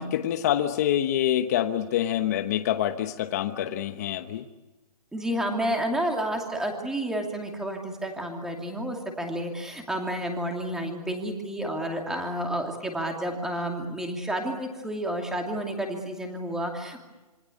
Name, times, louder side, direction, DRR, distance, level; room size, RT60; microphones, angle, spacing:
voice 1, 0.0-4.5, left 11 dB, 25° left, 7 dB, 1.1 m, -26 dB
voice 2, 5.1-17.0, right 1 dB, 5° right, 3 dB, 2.6 m, -30 dB
27.0 x 24.5 x 8.4 m, 1.2 s
hypercardioid pair, 170°, 20 cm